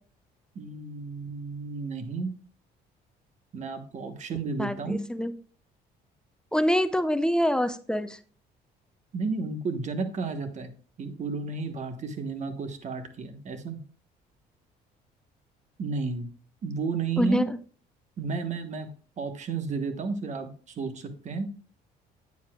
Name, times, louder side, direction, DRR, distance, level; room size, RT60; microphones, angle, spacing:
voice 1, 0.5-2.3 3.5-5.0 9.1-10.7 11.0-13.8 15.8-16.3 16.6-17.5 18.2-18.9 19.2-21.5, right 4 dB, 45° right, 8 dB, 1.2 m, -32 dB
voice 2, 4.6-5.3 6.5-8.2 17.2-17.4, equal, 5° left, 11 dB, 0.5 m, -25 dB
9.3 x 8.4 x 2.3 m, 0.41 s
cardioid pair, 110°, 17 cm